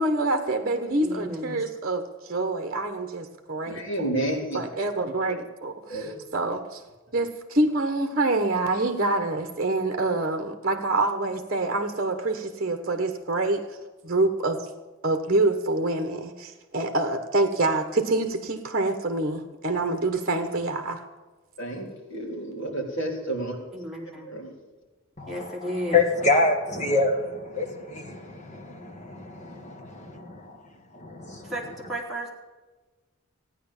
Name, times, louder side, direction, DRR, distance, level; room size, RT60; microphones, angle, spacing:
voice 1, 0.0-4.1 4.5-6.8 7.1-13.6 14.0-14.7 15.0-21.0, right 2 dB, 40° right, 5 dB, 1.2 m, -26 dB
voice 2, 1.0-1.6 23.7-24.3 25.3-26.1 31.4-32.3, equal, ahead, -4 dB, 3.4 m, -33 dB
voice 3, 3.7-4.6 5.9-6.1 21.6-23.6 24.2-24.5, right 1 dB, 60° left, -1 dB, 4.0 m, -30 dB
voice 4, 25.2-30.6 30.9-31.5, left 3 dB, 35° left, 2 dB, 2.2 m, -27 dB
15.0 x 9.8 x 7.2 m, 1.3 s
head